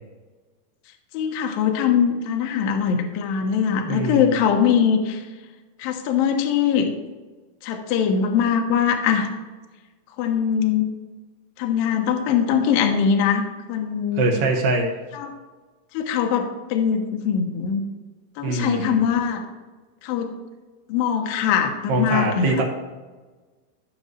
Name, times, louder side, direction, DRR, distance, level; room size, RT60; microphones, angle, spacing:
voice 1, 1.1-5.2 5.8-6.9 7.6-9.3 10.2-10.9 11.6-13.4 13.7-14.3 15.1-15.3 15.9-17.8 18.4-19.4 20.0-20.3 20.9-22.6, left 7 dB, 80° left, 4 dB, 2.1 m, -22 dB
voice 2, 3.8-4.4 14.2-14.9 18.4-19.0 21.9-22.6, right 2 dB, 70° right, 1 dB, 2.3 m, -23 dB
15.0 x 6.4 x 3.2 m, 1.3 s
omnidirectional pair, 5.4 m